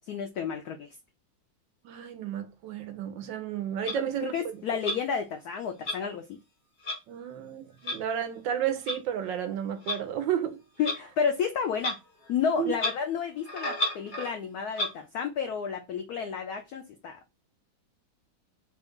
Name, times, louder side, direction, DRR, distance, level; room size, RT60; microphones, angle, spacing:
voice 1, 0.1-0.9 4.2-6.4 10.8-12.0 12.3-17.2, left 7 dB, 85° left, 0.8 m, -31 dB
voice 2, 1.8-4.3 4.9-5.0 7.1-10.6 12.6-12.7, right 9 dB, 70° right, 1.3 m, -32 dB
Clock, 3.9-4.0 4.8-5.0 5.8-6.0 6.8-7.0 7.8-8.0 8.9-9.0 9.9-10.0 10.8-11.0 11.8-12.0 12.2-12.3 12.7-13.0 13.4-14.3 14.7-14.9, left 1 dB, 65° left, 0.4 m, -31 dB
3.7 x 2.3 x 3.5 m
omnidirectional pair, 2.2 m